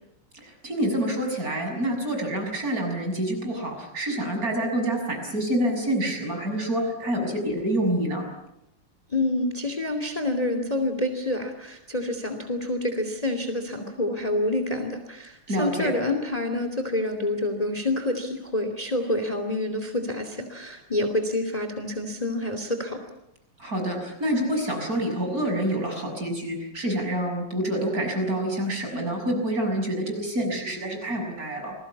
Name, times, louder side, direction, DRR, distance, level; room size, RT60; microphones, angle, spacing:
voice 1, 0.3-8.2 15.5-16.0 23.6-31.8, right 1 dB, 40° right, 3 dB, 7.1 m, -27 dB
voice 2, 9.1-23.0, left 1 dB, 15° left, 7 dB, 2.7 m, -27 dB
29.0 x 21.0 x 8.5 m, 0.85 s
omnidirectional pair, 2.4 m